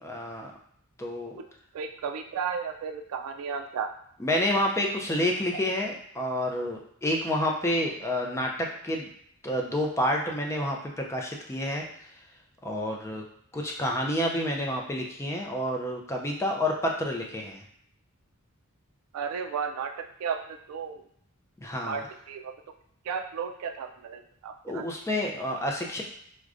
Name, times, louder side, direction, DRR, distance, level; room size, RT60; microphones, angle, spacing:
voice 1, 0.0-0.5 1.0-1.4 4.2-8.5 8.8-9.1 9.4-11.8 12.6-13.2 13.5-17.6 21.6-22.0 24.6-26.0, left 1 dB, 10° left, 0 dB, 0.4 m, -29 dB
voice 2, 1.7-3.9 19.1-19.9 20.2-21.0 21.9-22.5 23.1-24.8, right 6 dB, 70° right, 5 dB, 0.3 m, -34 dB
4.7 x 2.2 x 2.5 m, 0.69 s
head